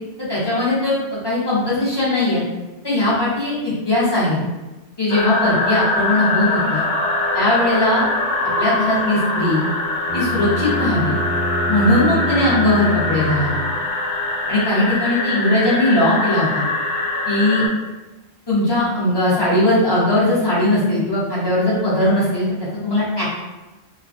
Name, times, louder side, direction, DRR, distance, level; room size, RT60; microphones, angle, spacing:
voice 1, 0.2-2.4 2.8-4.4 5.0-6.8 7.3-8.0 8.6-9.6 10.1-11.2 11.7-13.6 14.5-16.6 17.3-17.6 18.5-22.5 22.8-23.3, left 1 dB, 25° left, -9 dB, 0.7 m, -19 dB
sound 1, 5.1-17.7, left 2 dB, 85° left, 0.9 m, -23 dB
Bowed string instrument, 10.1-14.0, right 1 dB, 60° right, 0.6 m, -27 dB
2.4 x 2.1 x 2.4 m, 1.1 s
omnidirectional pair, 1.1 m